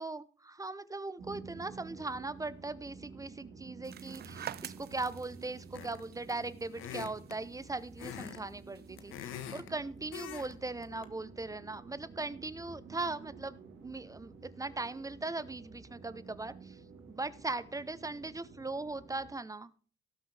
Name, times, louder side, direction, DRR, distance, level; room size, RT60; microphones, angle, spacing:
voice 1, 0.0-16.8 17.1-19.7, right 3 dB, 15° right, 15 dB, 0.8 m, -39 dB
sound 1, 1.2-19.3, right 4 dB, 75° right, 3.7 m, -51 dB
sound 2, 3.8-9.1, right 11 dB, 55° right, 0.5 m, -49 dB
sound 3, 5.7-6.1 6.7-7.4 8.0-8.4 8.7-9.7 10.1-10.5 10.8-11.0, left 10 dB, 85° left, 1.3 m, -43 dB
18.0 x 6.1 x 3.4 m, 0.42 s
cardioid pair, 90°, 20 cm